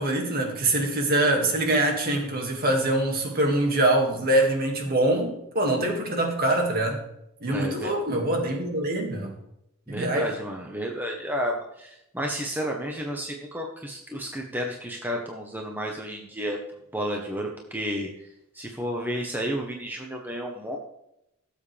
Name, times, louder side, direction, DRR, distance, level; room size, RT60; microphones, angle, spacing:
voice 1, 0.0-7.0 7.4-9.3 9.9-10.3, right 1 dB, 40° right, 2.2 m, -24 dB
voice 2, 7.4-7.9 9.9-16.6 16.9-18.1 18.5-20.8, equal, 10° right, 1.1 m, -31 dB
17.0 x 7.6 x 3.5 m
head